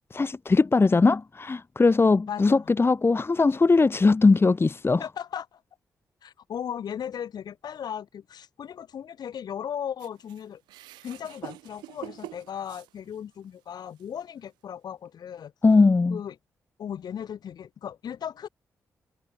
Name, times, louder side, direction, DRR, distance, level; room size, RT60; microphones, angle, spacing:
voice 1, 0.1-5.0 15.6-16.2, left 3 dB, 30° left, 1.1 m, -20 dB
voice 2, 2.3-2.7 5.0-5.6 6.2-10.6 11.0-15.5 16.1-16.4 16.8-18.5, left 8 dB, 65° left, 3.7 m, -36 dB
sound 1, 10.0-13.5 14.0-14.1 15.1-15.2, right 17 dB, 85° right, 3.7 m, -45 dB
hypercardioid pair, 40°, 7 cm